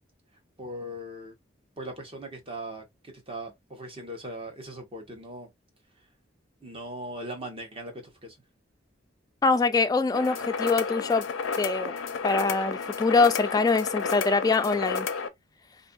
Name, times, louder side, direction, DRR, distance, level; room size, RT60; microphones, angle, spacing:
voice 1, 0.6-1.3 1.8-5.5 6.6-8.4, right 1 dB, 30° right, 0.9 m, -39 dB
voice 2, 9.4-11.2 11.6-11.9 12.2-15.1, left 4 dB, 20° left, 0.3 m, -24 dB
sound 1, 10.1-15.3, left 5 dB, 85° left, 0.5 m, -31 dB
2.6 x 2.5 x 2.3 m
head